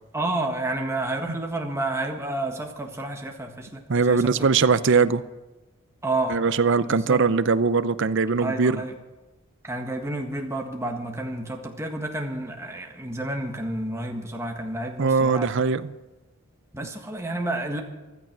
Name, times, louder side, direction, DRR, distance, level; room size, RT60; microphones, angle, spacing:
voice 1, 0.1-4.7 6.0-6.4 6.8-7.2 8.4-8.9 9.6-15.5 16.7-17.8, right 2 dB, 15° right, 2 dB, 1.6 m, -30 dB
voice 2, 3.9-5.2 6.3-8.8 15.0-15.9, right 5 dB, 55° right, 14 dB, 0.6 m, -21 dB
14.5 x 13.5 x 6.1 m, 1.1 s
head